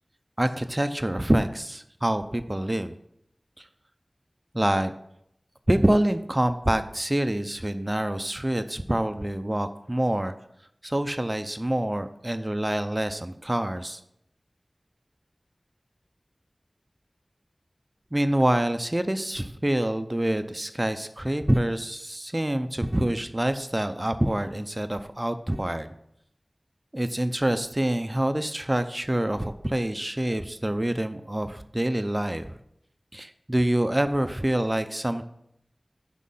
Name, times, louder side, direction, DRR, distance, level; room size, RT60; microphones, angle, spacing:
voice 1, 0.4-2.9 4.5-4.9 5.7-10.3 10.8-14.0 18.1-25.9 26.9-32.6 33.1-35.2, right 1 dB, 25° right, 10 dB, 0.5 m, -26 dB
6.4 x 6.3 x 5.5 m, 0.75 s
wide cardioid pair, 45°, 0 cm